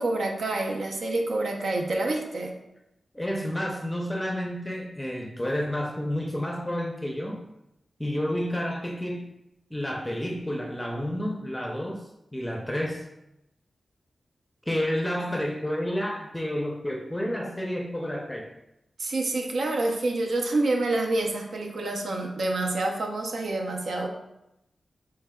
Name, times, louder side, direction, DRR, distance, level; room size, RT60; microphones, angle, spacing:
voice 1, 0.0-2.5 19.0-24.1, right 2 dB, 80° right, 1 dB, 0.6 m, -27 dB
voice 2, 3.1-7.4 8.0-9.3 9.7-12.0 12.3-13.0 14.7-18.5, equal, 10° left, 1 dB, 0.5 m, -30 dB
4.7 x 3.2 x 2.2 m, 0.87 s
wide cardioid pair, 80°, 0 cm